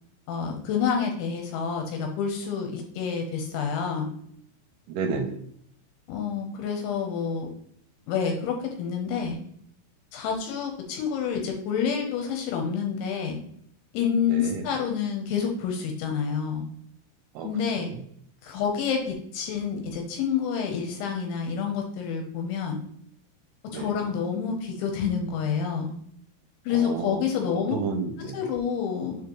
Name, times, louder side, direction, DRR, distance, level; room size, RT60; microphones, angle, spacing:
voice 1, 0.3-4.1 6.1-7.5 8.1-9.4 10.1-13.4 13.9-16.7 17.4-17.9 18.4-22.8 23.7-26.0 26.7-27.8 28.3-29.2, left 7 dB, 80° left, 3 dB, 3.0 m, -28 dB
voice 2, 4.9-5.4 14.3-14.7 17.4-17.5 17.8-17.9 23.7-24.0 26.7-27.2 27.7-28.4, right 5 dB, 80° right, 4 dB, 2.8 m, -31 dB
6.9 x 5.0 x 3.1 m, 0.68 s
omnidirectional pair, 5.8 m